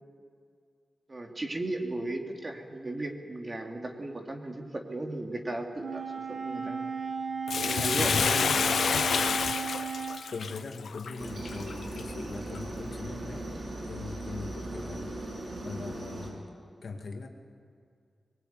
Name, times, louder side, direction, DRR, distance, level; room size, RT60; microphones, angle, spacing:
voice 1, 1.1-6.9 7.6-8.6, right 2 dB, 30° right, 3 dB, 2.9 m, -35 dB
Wind instrument woodwind instrument, 5.8-10.2, right 6 dB, 80° right, 2.2 m, -35 dB
Bathtub (filling or washing), 7.5-12.0 12.5-12.6, left 6 dB, 80° left, 0.8 m, -28 dB
voice 2, 7.9-8.3 10.3-16.5 16.8-17.3, left 4 dB, 60° left, 4 dB, 2.3 m, -41 dB
Aircraft, 11.2-16.3, right 1 dB, 45° right, 7.4 m, -38 dB
24.0 x 21.5 x 9.5 m, 2.3 s
wide cardioid pair, 125°, 0 cm